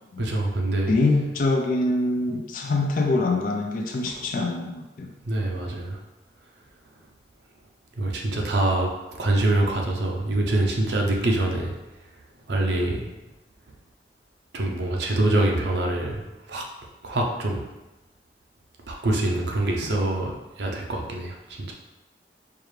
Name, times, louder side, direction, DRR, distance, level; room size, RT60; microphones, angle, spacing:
voice 1, 0.2-0.9 5.3-6.0 8.0-8.9 9.2-11.7 12.5-13.1 14.5-16.6 17.0-17.6 18.9-20.3 20.6-21.7, right 2 dB, 70° right, 0 dB, 0.6 m, -25 dB
voice 2, 0.9-5.1, left 2 dB, 45° left, 2 dB, 0.3 m, -24 dB
4.6 x 2.4 x 3.2 m, 1.1 s
head